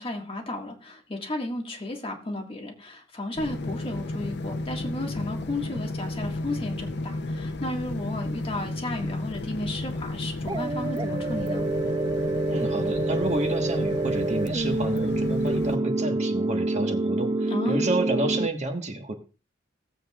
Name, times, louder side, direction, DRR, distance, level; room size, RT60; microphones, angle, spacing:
voice 1, 0.0-11.7 17.5-17.9, left 1 dB, 30° left, 1 dB, 1.8 m, -33 dB
sound 1, 3.4-15.8, left 2 dB, 60° left, 0.7 m, -32 dB
sound 2, 10.5-18.5, right 2 dB, 20° right, 0.4 m, -27 dB
voice 2, 12.5-19.1, right 2 dB, 40° right, 4 dB, 1.4 m, -30 dB
18.5 x 7.8 x 2.4 m, 0.33 s
head